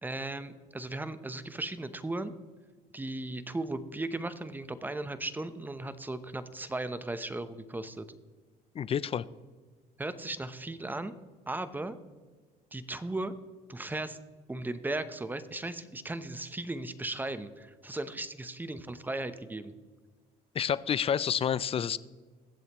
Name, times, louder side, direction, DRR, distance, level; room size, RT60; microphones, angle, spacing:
voice 1, 0.0-2.3 2.9-8.1 10.0-11.1 11.5-12.0 12.7-13.3 13.7-14.2 14.5-19.7, right 2 dB, 10° right, 12 dB, 0.8 m, -36 dB
voice 2, 8.7-9.2 20.5-22.0, left 8 dB, 35° left, 18 dB, 0.5 m, -29 dB
22.0 x 7.9 x 3.0 m, 1.4 s
cardioid pair, 110°, 17 cm